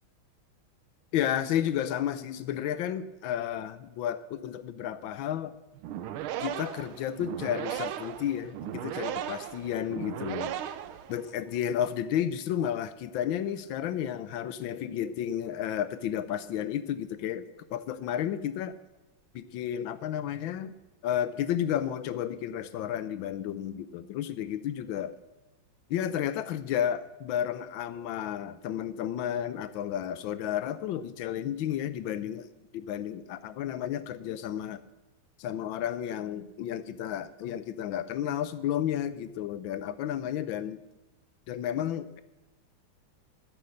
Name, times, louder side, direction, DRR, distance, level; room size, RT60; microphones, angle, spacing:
voice 1, 1.1-5.5 6.4-10.5 11.1-17.4 17.7-18.7 19.3-20.7 21.0-25.1 25.9-32.5 32.7-34.8 35.4-40.8 41.5-42.2, left 10 dB, 75° left, 15 dB, 1.3 m, -32 dB
sound 1, 5.8-11.5, right 10 dB, 80° right, 1.6 m, -37 dB
12.5 x 9.4 x 6.5 m, 1.0 s
omnidirectional pair, 2.3 m